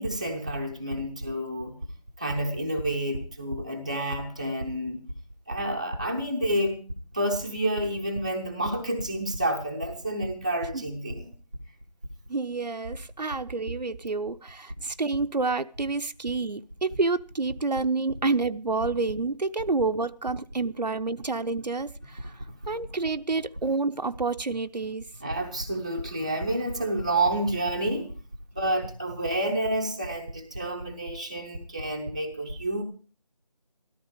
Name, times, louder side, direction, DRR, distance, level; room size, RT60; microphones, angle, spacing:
voice 1, 0.0-1.8 2.2-5.0 5.5-6.8 7.1-11.3 22.5-22.6 25.2-28.1 28.6-32.8, right 1 dB, 10° right, 0.8 m, -29 dB
voice 2, 12.3-22.3 22.7-25.0, right 3 dB, 80° right, 0.8 m, -28 dB
14.0 x 13.5 x 4.9 m
figure-of-eight pair, 170°, 21 cm